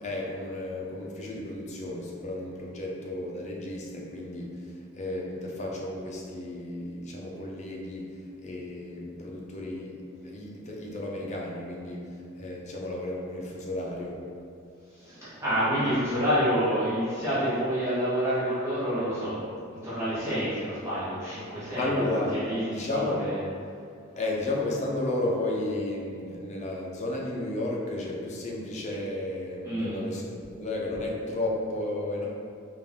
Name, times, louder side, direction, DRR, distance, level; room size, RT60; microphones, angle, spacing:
voice 1, 0.0-4.6 4.9-8.1 8.4-14.2 21.8-22.3 22.7-23.3 24.2-32.3, left 1 dB, 35° left, -3 dB, 0.6 m, -33 dB
voice 2, 14.9-22.0 22.3-23.4 29.6-30.0, equal, 15° right, -12 dB, 0.9 m, -28 dB
3.9 x 2.5 x 3.5 m, 2.4 s
head